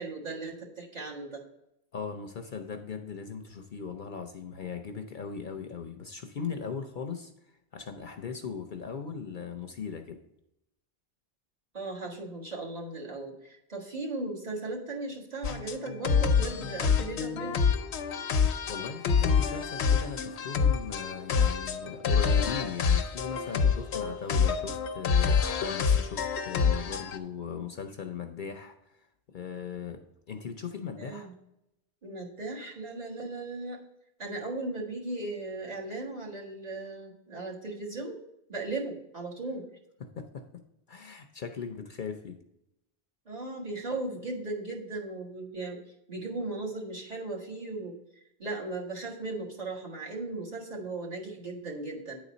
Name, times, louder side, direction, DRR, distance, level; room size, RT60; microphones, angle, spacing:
voice 1, 0.0-1.4 11.7-17.6 31.0-31.3 32.0-33.9 34.2-38.2 38.5-39.7 43.3-45.8 46.1-48.0 48.4-52.2, right 2 dB, 40° right, -2 dB, 1.6 m, -37 dB
voice 2, 1.9-7.3 7.7-10.2 18.7-29.1 29.3-30.0 30.3-31.3 40.0-40.4 40.9-42.4, left 6 dB, 55° left, 6 dB, 0.7 m, -38 dB
sound 1, 15.4-27.2, left 6 dB, 85° left, 0.9 m, -27 dB
9.2 x 4.1 x 5.0 m, 0.85 s
omnidirectional pair, 1.1 m